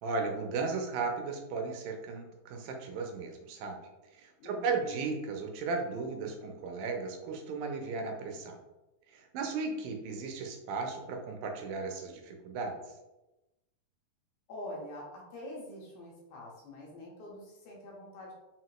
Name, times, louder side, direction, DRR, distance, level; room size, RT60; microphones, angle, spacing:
voice 1, 0.0-3.8 4.2-8.6 9.1-12.8, right 4 dB, 80° right, 3 dB, 2.2 m, -35 dB
voice 2, 4.4-5.1 14.5-18.3, left 1 dB, 75° left, -3 dB, 1.9 m, -45 dB
5.7 x 2.7 x 2.9 m, 1.0 s
omnidirectional pair, 4.2 m